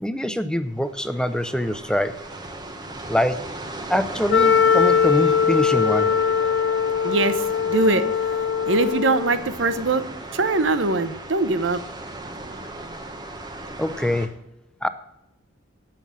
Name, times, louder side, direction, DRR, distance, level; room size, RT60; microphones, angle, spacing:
voice 1, 0.0-2.1 3.1-3.4 3.9-6.1 13.8-14.3 14.8-14.9, equal, 5° left, 11 dB, 0.6 m, -24 dB
sound 1, 0.7-14.3, right 2 dB, 20° right, 1.2 m, -37 dB
Wind instrument woodwind instrument, 4.3-9.4, left 7 dB, 65° left, 0.8 m, -21 dB
voice 2, 7.0-8.1 8.7-10.0 10.3-11.8, right 3 dB, 85° right, 12 dB, 0.9 m, -22 dB
15.5 x 6.0 x 7.3 m, 0.82 s
head